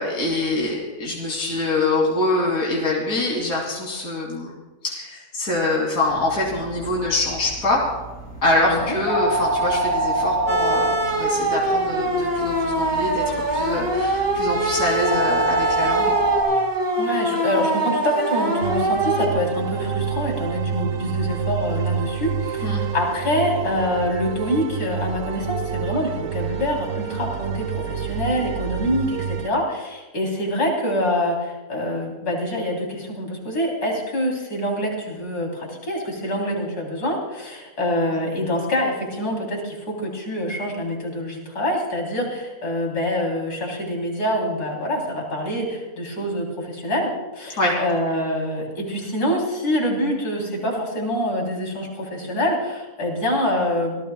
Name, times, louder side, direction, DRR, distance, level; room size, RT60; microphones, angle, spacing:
voice 1, 0.0-4.5 4.8-7.9 8.4-16.1 22.6-22.8 38.1-38.2 47.6-47.8, left 2 dB, 65° left, -4 dB, 3.3 m, -24 dB
sound 1, 6.1-16.4, right 1 dB, 90° right, 4.7 m, -27 dB
sound 2, 10.5-19.3, right 1 dB, 30° right, 2.8 m, -23 dB
voice 2, 17.0-54.0, equal, 85° left, -1 dB, 4.2 m, -25 dB
sound 3, 18.6-29.5, right 7 dB, 65° right, 1.2 m, -28 dB
26.5 x 17.0 x 2.3 m, 1.2 s
omnidirectional pair, 1.6 m